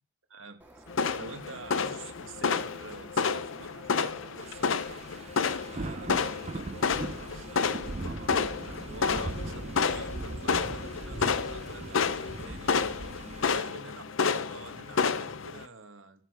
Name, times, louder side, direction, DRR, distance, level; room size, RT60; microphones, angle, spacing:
voice 1, 0.3-0.8 1.1-5.0 5.7-12.8 13.4-16.2, right 3 dB, 85° right, 7 dB, 1.7 m, -48 dB
Bird, 0.6-10.1, right 1 dB, 10° right, 2.0 m, -54 dB
sound 1, 0.9-15.6, left 5 dB, 80° left, 0.7 m, -30 dB
sound 2, 4.4-13.6, right 2 dB, 30° right, 0.5 m, -40 dB
11.0 x 10.0 x 4.8 m, 0.43 s
head